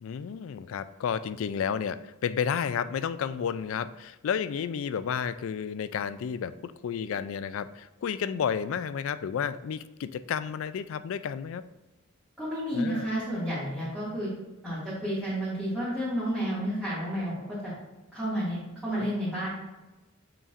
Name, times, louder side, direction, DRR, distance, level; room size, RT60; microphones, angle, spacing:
voice 1, 0.0-11.6 12.7-13.1 19.0-19.1, left 7 dB, 70° left, 14 dB, 0.3 m, -31 dB
voice 2, 12.4-14.3 14.6-17.7 18.1-19.5, equal, 5° right, -12 dB, 2.0 m, -31 dB
6.8 x 5.8 x 2.5 m, 1.1 s
head